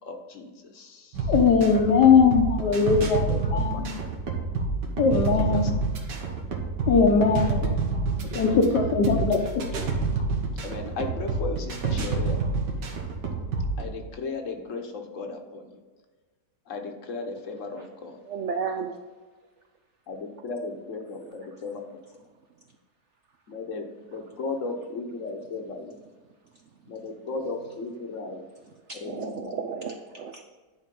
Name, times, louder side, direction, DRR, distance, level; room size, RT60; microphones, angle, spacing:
voice 1, 0.0-1.3 3.3-3.4 5.1-5.7 7.1-7.4 10.6-12.5 13.8-15.8 16.7-18.2 20.1-21.8 23.5-26.0 26.9-28.5 28.9-29.6, left 3 dB, 50° left, 4 dB, 1.2 m, -36 dB
sound 1, 1.1-13.8, right 4 dB, 85° right, 1.8 m, -28 dB
voice 2, 1.3-3.9 5.0-5.7 6.9-7.7 8.2-9.6, left 5 dB, 80° left, 4 dB, 1.6 m, -20 dB
voice 3, 18.3-18.9 20.9-21.3 24.1-24.6 27.6-27.9 28.9-30.4, right 6 dB, 70° right, 5 dB, 0.6 m, -35 dB
10.5 x 4.6 x 5.3 m, 1.4 s
omnidirectional pair, 1.8 m